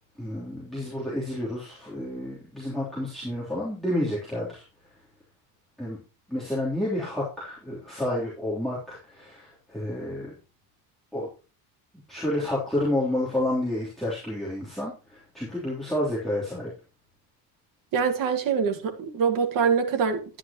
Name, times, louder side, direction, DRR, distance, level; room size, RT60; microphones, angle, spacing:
voice 1, 0.2-4.6 5.8-6.0 6.3-10.3 11.1-11.3 12.1-16.7, left 1 dB, ahead, 3.2 m, -30 dB
voice 2, 17.9-20.4, right 6 dB, 45° right, 1.8 m, -24 dB
11.5 x 10.0 x 2.9 m
cardioid pair, 170°, 44 cm